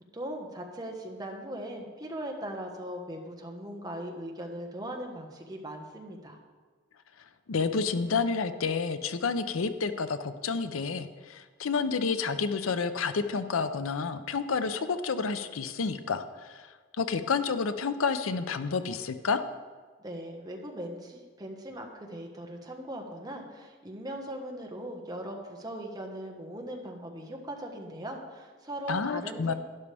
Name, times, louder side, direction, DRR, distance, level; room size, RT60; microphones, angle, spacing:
voice 1, 0.1-6.4 20.0-29.5, right 1 dB, 20° right, 1 dB, 1.3 m, -39 dB
voice 2, 7.5-19.4 28.9-29.5, left 5 dB, 85° left, 11 dB, 0.6 m, -30 dB
12.0 x 11.0 x 3.4 m, 1.5 s
head